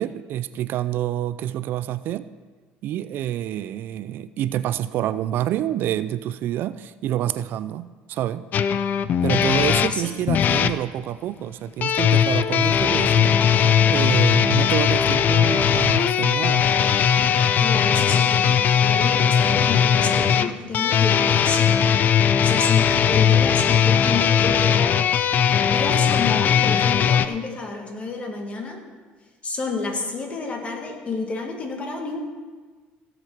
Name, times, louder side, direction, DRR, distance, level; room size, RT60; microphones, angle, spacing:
voice 1, 0.0-2.3 2.8-8.5 9.2-16.7, right 12 dB, 60° right, 14 dB, 0.4 m, -27 dB
sound 1, 8.5-10.8 11.8-27.3, left 8 dB, 50° left, 0.5 m, -19 dB
voice 2, 9.8-10.2 17.6-21.9 22.4-24.8 25.6-28.8 29.4-32.2, left 3 dB, 30° left, 2 dB, 2.1 m, -30 dB
16.0 x 7.4 x 4.6 m, 1.4 s
cardioid pair, 110°, 4 cm